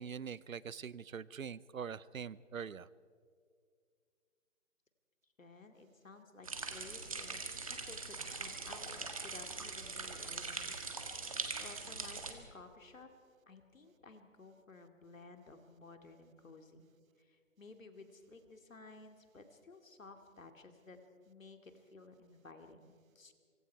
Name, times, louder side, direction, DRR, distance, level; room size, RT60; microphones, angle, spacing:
voice 1, 0.0-2.9, right 7 dB, 80° right, 20 dB, 0.8 m, -43 dB
voice 2, 5.4-7.4 7.7-10.8 11.1-11.2 11.6-13.1 13.5-16.9 17.2-21.0 21.3-23.3, left 3 dB, 75° left, 6 dB, 2.5 m, -55 dB
sound 1, 6.4-12.3, right 4 dB, 25° right, 1.5 m, -42 dB
25.0 x 24.0 x 4.7 m, 2.1 s
hypercardioid pair, 175°, 40 cm